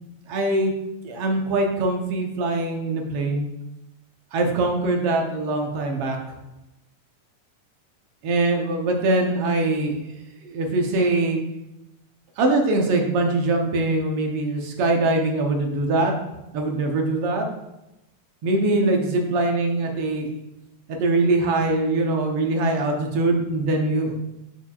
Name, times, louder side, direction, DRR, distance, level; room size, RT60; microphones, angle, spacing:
voice 1, 0.3-0.7 1.0-3.5 4.3-6.2 8.2-9.9 10.4-11.4 12.4-16.1 16.5-17.4 18.4-20.3 20.9-24.1, right 2 dB, 65° right, 2 dB, 1.6 m, -22 dB
7.1 x 6.6 x 2.4 m, 0.93 s
omnidirectional pair, 3.4 m